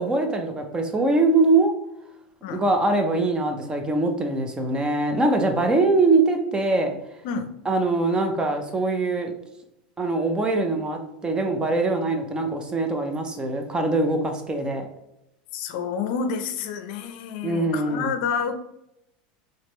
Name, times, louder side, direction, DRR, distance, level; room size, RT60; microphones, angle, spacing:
voice 1, 0.0-1.7 2.5-6.9 7.7-9.3 10.0-14.9 17.4-18.1, right 2 dB, 15° right, 4 dB, 0.7 m, -23 dB
voice 2, 15.5-18.5, left 6 dB, 65° left, 8 dB, 0.5 m, -29 dB
4.2 x 3.1 x 3.1 m, 0.82 s
supercardioid pair, 120°, 5 cm